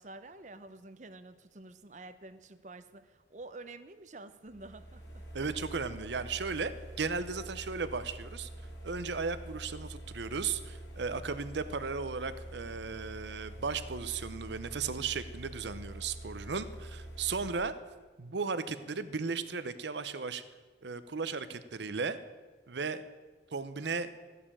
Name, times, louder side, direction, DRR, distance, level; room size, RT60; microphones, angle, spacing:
voice 1, 0.0-5.5, right 2 dB, 40° right, 11 dB, 0.7 m, -49 dB
sound 1, 4.5-17.5, right 1 dB, 80° left, 2.7 m, -46 dB
voice 2, 5.3-6.7 7.0-8.5 8.8-17.7 18.2-20.4 20.8-22.2 22.7-23.0 23.5-24.1, right 5 dB, 75° right, 12 dB, 0.7 m, -35 dB
15.0 x 6.8 x 8.6 m, 1.3 s
head